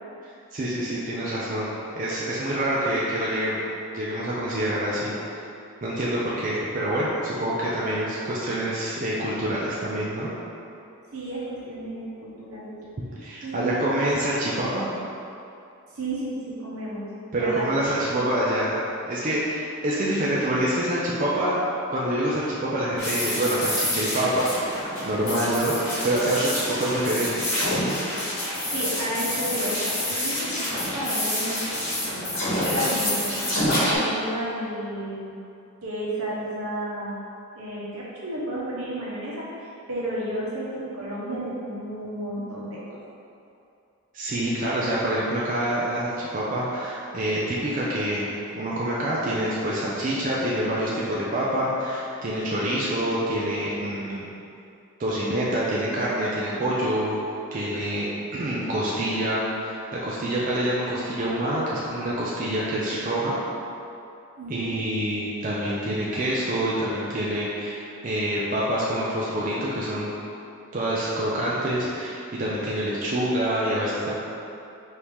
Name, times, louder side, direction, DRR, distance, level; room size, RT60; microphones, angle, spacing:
voice 1, 0.5-1.7 2.0-3.6 3.9-5.1 5.8-10.3 13.0-14.9 17.3-18.8 19.1-21.6 21.9-25.7 26.0-27.4 44.1-48.3 48.5-54.3 55.0-57.2 57.5-63.3 64.5-70.1 70.7-74.1, right 1 dB, 35° right, -7 dB, 0.4 m, -26 dB
voice 2, 11.1-12.8 13.4-13.9 15.9-17.1 17.3-17.6 18.0-18.2 28.7-31.7 32.0-35.4 35.8-37.2 37.5-43.0 64.4-64.7, right 1 dB, 75° right, -6 dB, 1.0 m, -32 dB
sound 1, 23.0-34.0, left 1 dB, 55° left, 1.5 m, -27 dB
4.7 x 2.8 x 3.5 m, 2.7 s
head